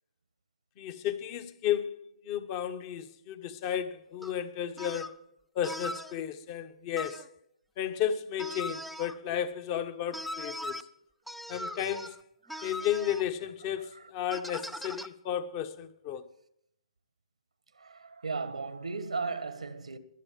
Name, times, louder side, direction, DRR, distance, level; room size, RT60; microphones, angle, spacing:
voice 1, 0.8-5.2 5.5-7.3 7.8-10.8 11.5-12.2 12.6-16.2, left 10 dB, 30° left, 1.2 m, -33 dB
sound 1, 4.2-4.3 4.8-5.2 5.6-6.1 7.0-7.3 8.4-9.2 10.1-10.8 11.3-12.2 12.5-13.2 14.3-15.1, left 1 dB, ahead, 0.5 m, -39 dB
voice 2, 17.7-20.0, right 4 dB, 90° right, 1.6 m, -36 dB
22.0 x 8.4 x 7.5 m
hypercardioid pair, 145°, 3 cm